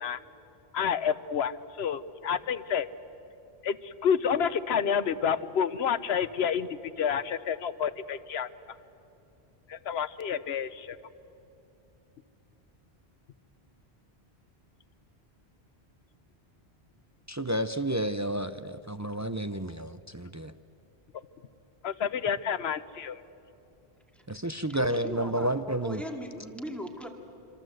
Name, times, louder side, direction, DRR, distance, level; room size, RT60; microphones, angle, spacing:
voice 1, 0.7-2.9 3.6-8.5 9.7-11.0 21.8-23.2, left 7 dB, 75° left, 14 dB, 1.0 m, -29 dB
voice 2, 17.3-20.5 24.3-26.0, right 1 dB, 25° right, 10 dB, 0.3 m, -31 dB
voice 3, 24.7-27.1, equal, ahead, 2 dB, 2.2 m, -39 dB
26.5 x 25.0 x 7.8 m, 2.7 s
omnidirectional pair, 1.1 m